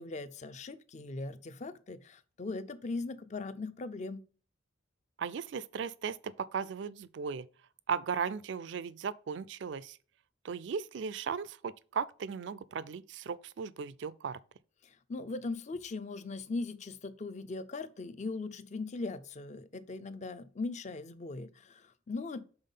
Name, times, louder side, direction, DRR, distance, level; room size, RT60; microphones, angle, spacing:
voice 1, 0.0-4.2 14.8-22.4, left 3 dB, 35° left, 0.5 m, -39 dB
voice 2, 5.2-7.5 7.9-10.0 10.4-14.4, right 6 dB, 65° right, 0.4 m, -37 dB
5.6 x 4.0 x 5.4 m
head